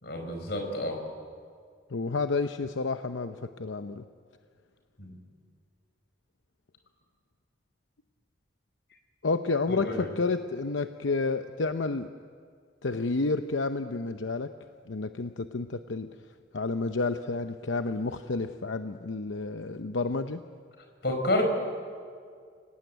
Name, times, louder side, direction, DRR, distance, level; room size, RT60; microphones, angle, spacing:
voice 1, 0.0-1.0 5.0-5.2 9.7-10.0 21.0-21.4, left 1 dB, 60° left, 4 dB, 5.0 m, -29 dB
voice 2, 1.9-4.0 9.2-12.1 12.8-14.5 14.9-16.1 16.5-20.4, left 3 dB, 85° left, 8 dB, 0.8 m, -30 dB
30.0 x 18.5 x 9.2 m, 2.1 s
head